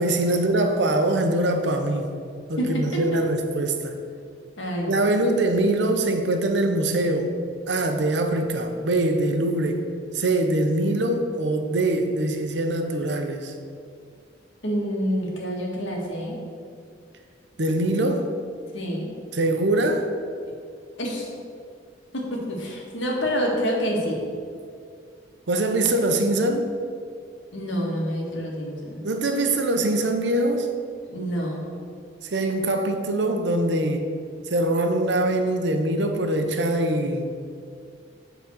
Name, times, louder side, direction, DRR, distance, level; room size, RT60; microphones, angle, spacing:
voice 1, 0.0-2.1 2.5-4.0 4.9-7.3 7.7-9.8 10.1-13.5 17.6-18.3 19.3-20.1 25.5-26.7 29.0-30.7 32.2-34.1 34.5-37.3, right 1 dB, 65° right, 5 dB, 0.8 m, -23 dB
voice 2, 2.6-3.2 4.6-5.0 14.6-16.4 18.7-19.1 21.0-21.3 22.1-24.2 27.5-29.0 31.1-31.7, equal, 85° left, -1 dB, 1.7 m, -27 dB
8.4 x 4.0 x 6.4 m, 2.3 s
head